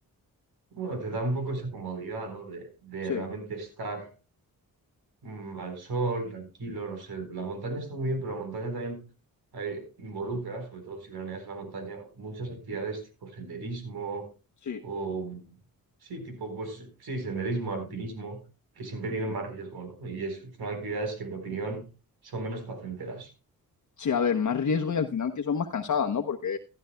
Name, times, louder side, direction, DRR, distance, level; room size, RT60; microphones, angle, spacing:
voice 1, 0.7-4.1 5.2-9.0 9.5-14.3 14.8-15.5 16.0-18.4 18.8-21.8 22.2-23.3, right 3 dB, 80° right, 6 dB, 4.2 m, -34 dB
voice 2, 24.0-26.6, left 6 dB, 50° left, 4 dB, 0.9 m, -27 dB
15.5 x 11.0 x 2.2 m, 0.31 s
cardioid pair, 75°, 37 cm